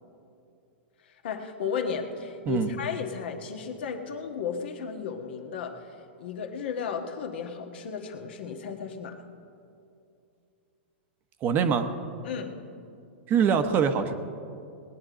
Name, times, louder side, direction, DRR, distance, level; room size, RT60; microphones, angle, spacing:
voice 1, 1.0-9.2 12.2-12.5, left 6 dB, 70° left, 4 dB, 1.4 m, -34 dB
voice 2, 11.4-11.9 13.3-14.1, right 6 dB, 35° right, 8 dB, 0.9 m, -23 dB
19.5 x 9.4 x 5.1 m, 2.6 s
hypercardioid pair, 120°, 6 cm